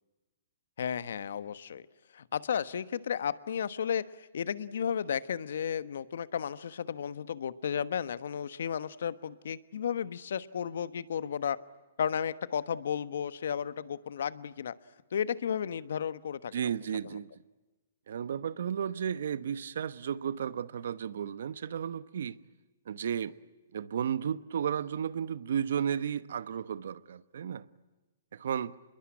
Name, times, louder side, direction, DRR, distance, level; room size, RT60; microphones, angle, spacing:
voice 1, 0.8-1.9 2.1-11.6 12.0-14.7 15.1-16.5 17.0-17.1, left 8 dB, 75° left, 1.3 m, -33 dB
voice 2, 16.5-17.3 18.1-22.4 22.9-23.3 23.7-27.7 28.3-28.7, right 8 dB, 70° right, 1.1 m, -33 dB
27.0 x 22.0 x 9.8 m
hypercardioid pair, 140°, 0 cm